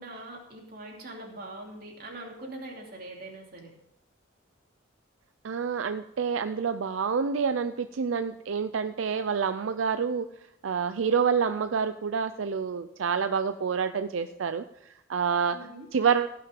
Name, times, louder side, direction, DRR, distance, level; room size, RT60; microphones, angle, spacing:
voice 1, 0.0-3.7 15.5-15.9, right 2 dB, 50° right, 0 dB, 2.8 m, -42 dB
voice 2, 5.4-10.3 10.6-14.6 14.9-15.6 15.9-16.3, right 6 dB, 85° right, 10 dB, 0.5 m, -27 dB
16.5 x 5.9 x 5.2 m, 0.84 s
head